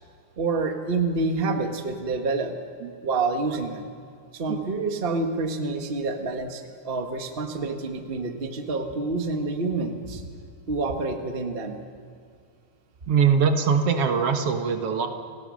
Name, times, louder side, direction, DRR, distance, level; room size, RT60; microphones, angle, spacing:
voice 1, 0.4-2.5 3.0-3.8 4.3-10.2 10.7-11.8, right 3 dB, 90° right, 5 dB, 0.5 m, -27 dB
voice 2, 13.1-15.1, right 6 dB, 55° right, 6 dB, 1.9 m, -22 dB
29.5 x 18.0 x 6.4 m, 2.3 s
omnidirectional pair, 3.9 m